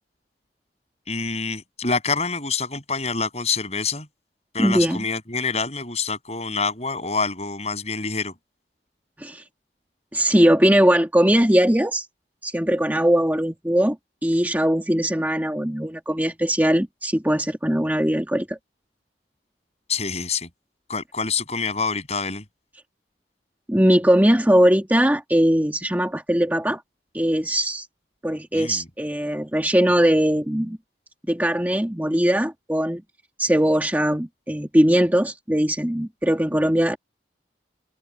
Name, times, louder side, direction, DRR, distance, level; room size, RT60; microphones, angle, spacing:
voice 1, 1.1-4.1 4.5-8.3 19.9-20.5 20.9-22.4 28.5-28.8, left 4 dB, 35° left, 7.9 m, -26 dB
voice 2, 4.6-5.0 9.2-9.4 10.1-12.1 12.4-14.0 14.2-18.6 23.7-26.8 27.1-27.9 28.2-30.8 31.3-33.0 33.4-37.0, equal, 10° right, 1.6 m, -20 dB
head